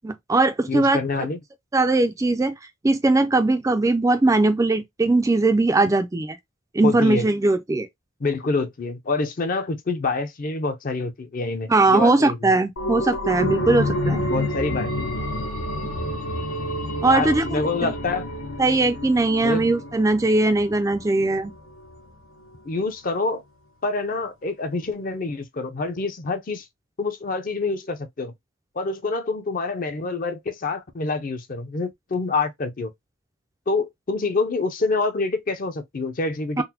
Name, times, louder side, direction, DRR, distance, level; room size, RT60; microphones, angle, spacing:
voice 1, 0.0-1.0 1.7-2.5 2.8-6.4 6.7-7.9 11.7-14.2 15.8-15.9 17.0-17.9 18.6-21.5 36.6-36.7, right 2 dB, 15° right, 0.3 m, -20 dB
voice 2, 0.7-1.4 6.8-7.3 8.2-12.4 14.3-15.5 17.1-18.3 19.4-19.7 22.6-23.4 23.8-26.7 27.0-28.3 28.7-32.9 33.7-36.6, left 3 dB, 40° left, 0.5 m, -26 dB
sound 1, 12.8-22.1 22.5-22.6, left 1 dB, 85° left, 0.9 m, -29 dB
3.9 x 2.0 x 2.8 m
head